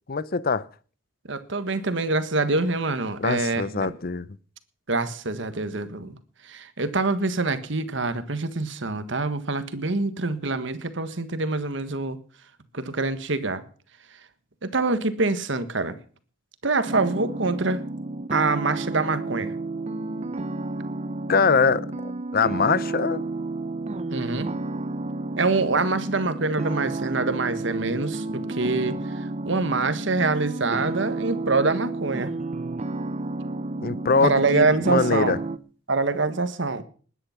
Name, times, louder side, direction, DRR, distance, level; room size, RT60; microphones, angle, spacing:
voice 1, 0.1-0.7 3.2-4.3 21.3-23.2 33.8-35.4, left 4 dB, 50° left, 0.7 m, -23 dB
voice 2, 1.3-3.9 4.9-6.2 6.5-12.2 12.7-13.6 14.6-16.0 16.6-17.9 18.3-19.5 24.1-24.5 25.4-29.0 29.4-32.3 34.2-35.4 35.9-36.8, right 3 dB, 65° right, 1.6 m, -25 dB
sound 1, 16.9-35.6, right 2 dB, 35° right, 0.7 m, -31 dB
20.0 x 10.0 x 5.9 m
head